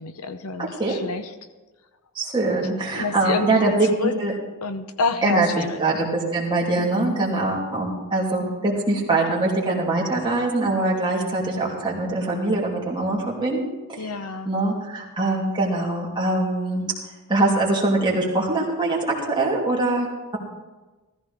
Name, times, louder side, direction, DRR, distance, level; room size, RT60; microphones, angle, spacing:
voice 1, 0.0-1.3 2.9-5.8 6.8-7.6 8.4-8.9 14.0-14.5, left 4 dB, 75° left, 9 dB, 0.8 m, -29 dB
voice 2, 2.1-3.9 4.2-4.3 5.2-5.5 5.8-14.1 14.4-16.8 17.3-20.1, right 2 dB, 20° right, -4 dB, 3.0 m, -23 dB
15.5 x 14.5 x 3.6 m, 1.2 s
head